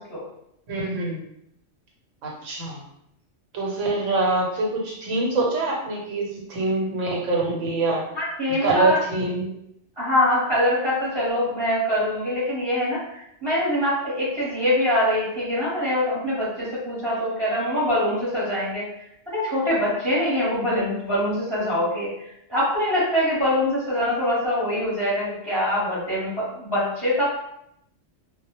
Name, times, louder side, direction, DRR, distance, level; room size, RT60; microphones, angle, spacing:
voice 1, 0.7-1.2 2.2-2.8 3.5-8.0 8.6-9.5, right 2 dB, 85° right, -1 dB, 1.0 m, -24 dB
voice 2, 8.1-9.0 10.0-18.8 19.3-22.1 22.5-27.2, left 1 dB, 25° right, -9 dB, 0.8 m, -24 dB
2.1 x 2.0 x 2.9 m, 0.77 s
omnidirectional pair, 1.3 m